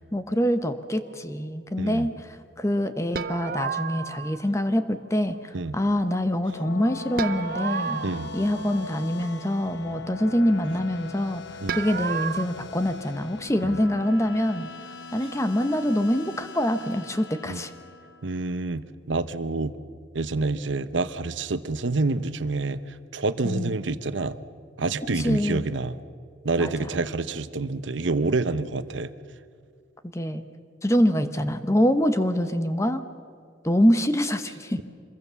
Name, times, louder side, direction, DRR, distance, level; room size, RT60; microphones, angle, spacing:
voice 1, 0.1-8.0 8.3-11.4 11.7-14.7 15.1-17.7 23.4-23.8 25.2-25.7 26.6-26.9 30.0-30.4 30.8-33.0 33.6-34.8, equal, 15° left, 9 dB, 1.0 m, -25 dB
sound 1, 3.1-4.5 7.2-9.1 11.7-12.4, right 6 dB, 50° right, 0.6 m, -31 dB
sound 2, 6.2-18.5, left 4 dB, 70° left, 1.2 m, -40 dB
voice 2, 18.2-18.8 19.1-19.8 20.1-22.8 23.1-24.4 24.8-26.0 26.4-29.1, right 3 dB, 80° right, 13 dB, 0.9 m, -27 dB
26.0 x 22.0 x 7.0 m, 2.2 s
head